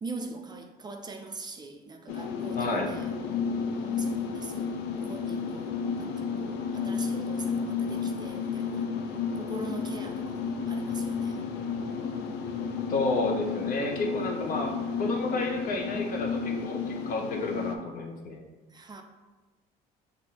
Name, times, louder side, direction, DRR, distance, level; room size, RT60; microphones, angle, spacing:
voice 1, 0.0-3.1 3.7-8.9 9.3-11.4 14.2-14.8 18.7-19.0, right 3 dB, 25° right, 4 dB, 0.4 m, -42 dB
sound 1, 2.1-17.8, left 5 dB, 90° left, 0.4 m, -32 dB
voice 2, 2.5-2.9 12.9-14.7 15.0-18.4, left 2 dB, 55° left, 1 dB, 0.8 m, -31 dB
6.0 x 2.6 x 2.9 m, 1.3 s
cardioid pair, 110°, 17 cm